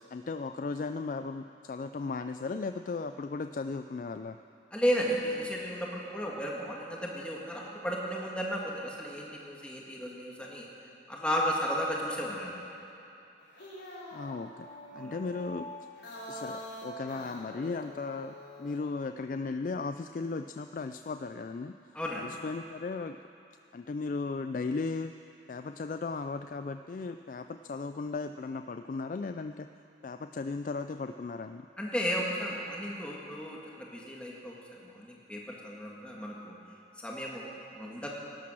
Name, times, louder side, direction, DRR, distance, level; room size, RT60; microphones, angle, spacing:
voice 1, 0.1-4.4 14.1-14.7 14.9-15.7 16.3-21.7 22.1-23.2 23.7-25.1 25.5-29.7 30.0-31.7, left 4 dB, 45° left, 8 dB, 0.3 m, -36 dB
voice 2, 4.7-10.7 11.1-12.5 14.9-15.1 21.9-22.2 31.8-34.6 34.9-36.5 37.0-38.1, equal, 5° left, -3 dB, 1.5 m, -34 dB
sound 1, 13.4-18.9, equal, 90° left, 4.6 m, -45 dB
17.5 x 12.0 x 6.2 m, 2.8 s
head